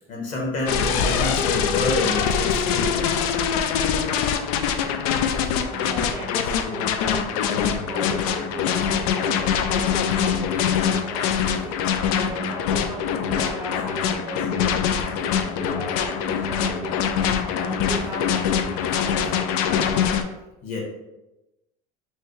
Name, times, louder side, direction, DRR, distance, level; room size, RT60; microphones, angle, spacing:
voice 1, 0.1-3.3 20.6-20.8, left 2 dB, 40° left, -2 dB, 1.3 m, -28 dB
sound 1, 0.7-20.2, left 7 dB, 85° left, 0.4 m, -23 dB
voice 2, 5.2-17.2 17.6-19.3, right 1 dB, 10° right, -3 dB, 0.4 m, -36 dB
5.6 x 2.2 x 3.1 m, 0.96 s
cardioid pair, 160°, 19 cm